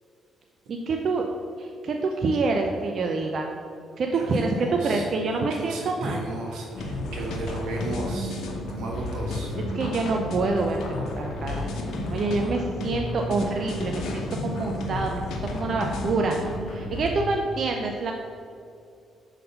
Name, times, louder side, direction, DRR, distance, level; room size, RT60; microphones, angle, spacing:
voice 1, 0.7-1.3 1.6-3.5 4.0-6.3 9.6-11.7 12.1-16.4 16.7-18.1, right 3 dB, 55° right, 2 dB, 0.5 m, -27 dB
voice 2, 4.1-5.1 5.5-9.5, right 2 dB, 85° right, -2 dB, 1.4 m, -34 dB
sound 1, 6.7-17.1, left 1 dB, 75° left, 0.9 m, -32 dB
5.6 x 4.0 x 5.4 m, 2.5 s
cardioid pair, 90°, 0 cm